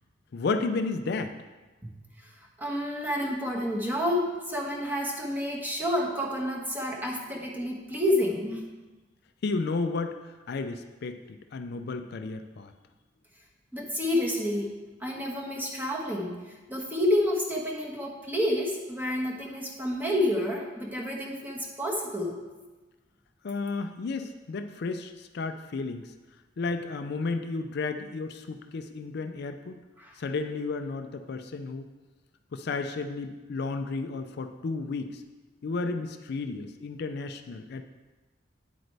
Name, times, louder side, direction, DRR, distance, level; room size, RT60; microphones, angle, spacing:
voice 1, 0.3-1.3 9.4-10.2 10.5-12.7 23.4-26.1 26.6-29.7 30.2-31.8 32.5-35.2 35.6-37.8, left 3 dB, 55° left, 7 dB, 0.4 m, -32 dB
voice 2, 2.6-8.6 13.7-16.4 16.7-22.4 30.0-30.2, left 1 dB, 10° right, -2 dB, 1.3 m, -29 dB
9.2 x 7.9 x 3.3 m, 1.2 s
head